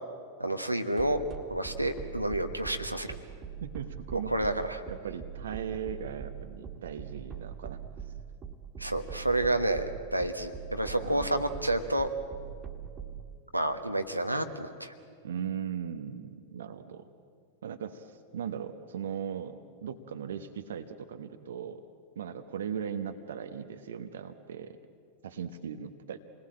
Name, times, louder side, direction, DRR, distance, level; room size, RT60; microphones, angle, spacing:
voice 1, 0.4-1.2 1.5-3.1 4.3-4.8 8.8-12.1 13.5-14.9, right 1 dB, 85° right, 6 dB, 1.3 m, -29 dB
sound 1, 1.0-13.2, right 8 dB, 25° right, 2.1 m, -41 dB
voice 2, 3.6-4.3 4.9-7.8 11.0-11.4 15.2-17.0 17.6-21.8 22.2-24.8 25.2-26.2, right 8 dB, 65° right, 8 dB, 1.0 m, -38 dB
27.5 x 19.5 x 8.7 m, 2.3 s
figure-of-eight pair, 90°, 0 cm